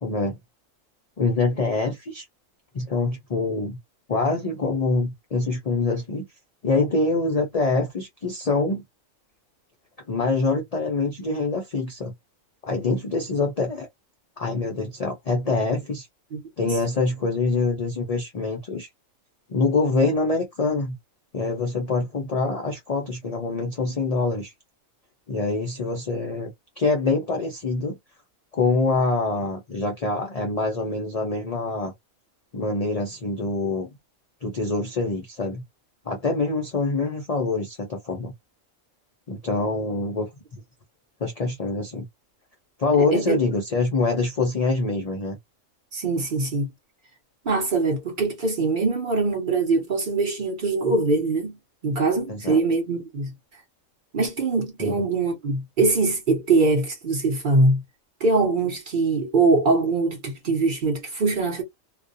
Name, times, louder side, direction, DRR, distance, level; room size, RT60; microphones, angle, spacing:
voice 1, 0.0-0.4 1.2-2.2 2.7-3.8 4.1-6.3 6.6-8.8 10.1-12.1 12.6-13.9 14.4-16.1 16.6-18.9 19.5-21.0 21.3-24.5 25.3-28.0 28.5-31.9 32.5-33.9 34.4-35.6 36.1-38.3 39.3-40.6 41.2-42.1 42.8-45.4 52.3-52.6 54.8-55.1, left 3 dB, 55° left, 0.4 m, -25 dB
voice 2, 16.3-16.8 43.1-43.4 45.9-46.7 47.5-51.5 51.8-53.3 54.1-57.8 58.2-61.6, right 3 dB, 45° right, 0.8 m, -22 dB
2.4 x 2.1 x 2.6 m
omnidirectional pair, 1.4 m